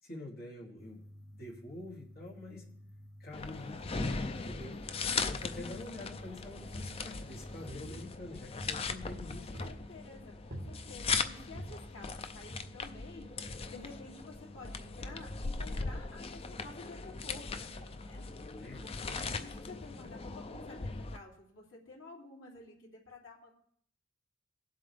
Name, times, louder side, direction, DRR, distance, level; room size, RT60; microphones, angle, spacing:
voice 1, 0.0-1.0 1.4-2.7 3.2-4.8 5.2-9.7 18.6-19.4, left 2 dB, 50° left, -2 dB, 2.5 m, -47 dB
sound 1, 0.8-8.0, equal, 5° right, 2.5 m, -52 dB
sound 2, 3.3-21.2, left 4 dB, 30° left, 0.5 m, -39 dB
sound 3, 5.7-6.2 6.6-7.4 7.7-9.1 9.5-10.0 10.5-11.1 11.5-12.0 12.5-13.0 13.5-13.6, equal, 50° right, 1.8 m, -46 dB
voice 2, 9.2-13.3 13.7-18.2 18.8-23.5, left 3 dB, 75° left, -3 dB, 3.1 m, -51 dB
18.0 x 7.8 x 3.4 m, 0.63 s
head